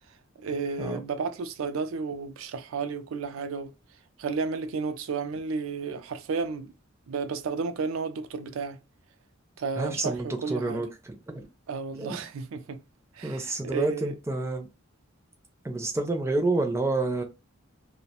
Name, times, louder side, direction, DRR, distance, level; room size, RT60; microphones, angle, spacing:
voice 1, 0.4-3.7 4.2-6.7 7.1-8.8 9.6-10.8 11.7-12.8 13.1-14.2, right 5 dB, 85° right, 0.4 m, -32 dB
voice 2, 9.8-11.4 12.0-12.2 13.2-14.7 15.6-17.2, right 2 dB, 15° right, 0.4 m, -29 dB
2.3 x 2.1 x 2.7 m
head